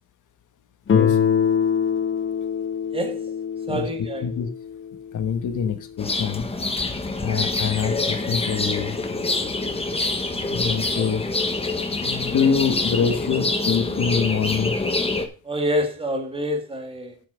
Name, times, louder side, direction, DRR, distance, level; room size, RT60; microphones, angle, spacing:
Guitar, 0.9-5.7, left 7 dB, 35° left, 1.0 m, -24 dB
voice 1, 2.9-3.2 3.7-4.3 11.0-11.1 15.4-17.2, equal, 15° right, 2.0 m, -27 dB
voice 2, 5.1-6.5 7.2-9.0 10.5-11.3 12.0-14.8, left 7 dB, 55° left, 1.5 m, -25 dB
sound 1, 6.0-15.3, left 2 dB, 15° left, 1.3 m, -26 dB
8.9 x 5.9 x 6.2 m
cardioid pair, 145°, 36 cm